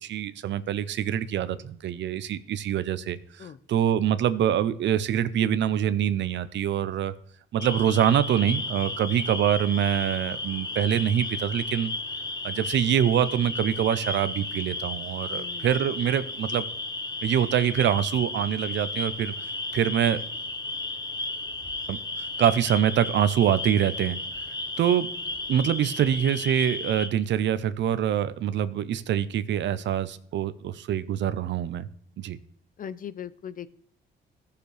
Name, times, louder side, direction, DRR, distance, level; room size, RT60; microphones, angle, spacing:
voice 1, 0.0-7.1 7.5-11.9 12.4-16.7 17.2-19.3 19.7-20.2 21.9-22.0 22.4-24.2 24.8-25.1 25.5-31.9 32.2-32.4, right 10 dB, 65° right, 15 dB, 0.6 m, -25 dB
sound 1, 7.6-27.1, left 2 dB, 20° left, 1.1 m, -34 dB
voice 2, 15.3-15.7 32.8-33.7, left 8 dB, 45° left, 16 dB, 0.5 m, -39 dB
14.5 x 6.7 x 3.3 m, 0.68 s
cardioid pair, 90°, 20 cm